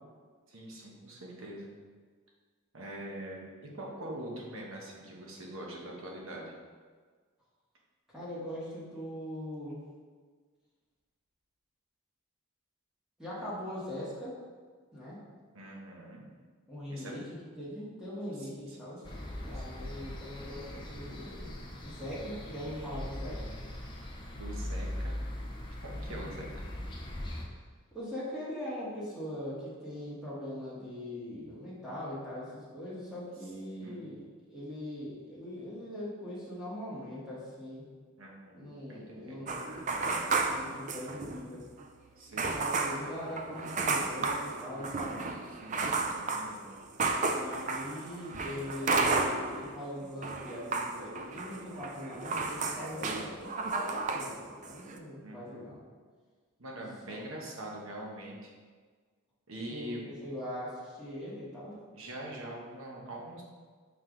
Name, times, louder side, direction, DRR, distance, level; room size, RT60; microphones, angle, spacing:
voice 1, 0.5-1.7 2.7-6.5 15.5-16.3 16.9-17.1 18.4-18.8 19.5-19.9 24.3-25.2 25.8-26.5 33.8-34.2 38.2-39.4 42.2-42.6 45.3-46.7 53.0-53.2 55.2-55.7 56.6-58.5 59.5-60.0 61.9-63.4, right 1 dB, 65° right, -2 dB, 1.2 m, -44 dB
voice 2, 8.1-9.8 13.2-14.4 14.9-15.2 16.7-17.2 17.6-19.0 19.4-21.5 21.8-23.5 26.0-26.4 27.9-34.2 34.5-37.8 38.5-39.7 40.4-41.6 42.5-45.2 47.3-55.8 57.1-57.2 59.7-61.8, left 1 dB, 5° right, -9 dB, 1.5 m, -41 dB
sound 1, 19.0-27.4, left 1 dB, 20° left, 0.7 m, -40 dB
sound 2, 39.5-41.5 41.8-41.9 42.4-49.8 50.0-54.4 54.6-55.0, right 3 dB, 35° right, 0.4 m, -33 dB
5.5 x 4.8 x 3.9 m, 1.5 s
head